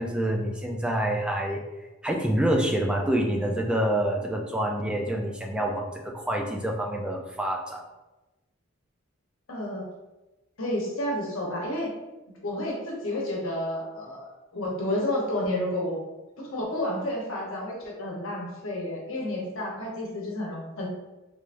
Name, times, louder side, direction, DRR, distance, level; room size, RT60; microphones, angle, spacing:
voice 1, 0.0-1.6 2.0-7.8, right 1 dB, 5° right, 1 dB, 0.3 m, -27 dB
voice 2, 9.5-9.8 10.6-11.9 12.4-16.0 16.4-20.9, left 1 dB, 75° left, -2 dB, 0.9 m, -30 dB
3.4 x 3.3 x 2.5 m, 1.1 s
head